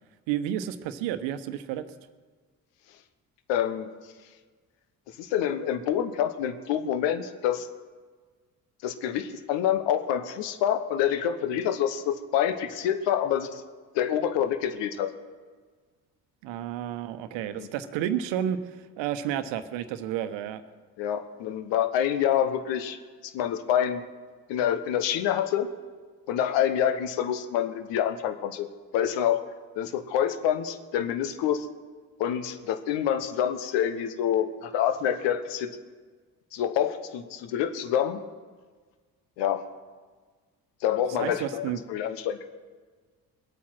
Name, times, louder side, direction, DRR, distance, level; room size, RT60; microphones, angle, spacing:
voice 1, 0.3-1.8 16.4-20.6 41.2-41.8, right 10 dB, 65° right, 11 dB, 1.1 m, -31 dB
voice 2, 3.5-3.9 5.2-7.7 8.8-13.6 13.9-15.1 17.5-17.7 21.0-23.0 23.3-24.0 24.5-25.7 26.3-28.7 28.9-29.4 29.8-31.7 32.2-35.7 36.5-38.2 39.4-39.6 40.8-42.5, left 9 dB, 65° left, 10 dB, 1.2 m, -27 dB
21.0 x 8.5 x 6.0 m, 1.5 s
figure-of-eight pair, 45°, 47 cm